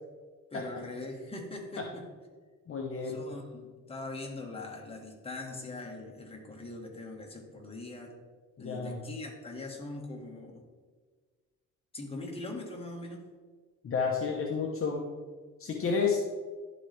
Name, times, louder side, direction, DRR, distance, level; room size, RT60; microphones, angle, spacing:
voice 1, 0.5-2.1 3.0-8.1 8.6-10.6 11.9-13.3, left 2 dB, 20° left, 0 dB, 1.5 m, -41 dB
voice 2, 2.7-3.2 8.6-9.0 13.8-15.0 15.6-16.2, left 5 dB, 45° left, 0 dB, 0.9 m, -30 dB
11.5 x 4.0 x 3.3 m, 1.5 s
cardioid pair, 90°, 30 cm